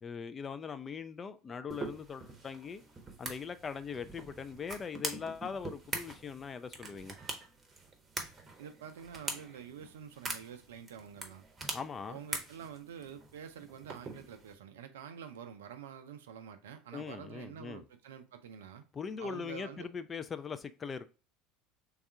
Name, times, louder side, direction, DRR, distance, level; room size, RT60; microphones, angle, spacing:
voice 1, 0.0-2.8 3.2-7.1 11.7-12.2 16.9-17.8 18.9-21.1, left 6 dB, 25° left, 0.3 m, -41 dB
sound 1, 1.7-14.5, right 3 dB, 25° right, 0.8 m, -44 dB
voice 2, 8.6-11.5 12.1-18.8 19.2-19.9, right 8 dB, 70° right, 0.4 m, -47 dB
3.5 x 2.3 x 4.2 m
figure-of-eight pair, 70°, 0 cm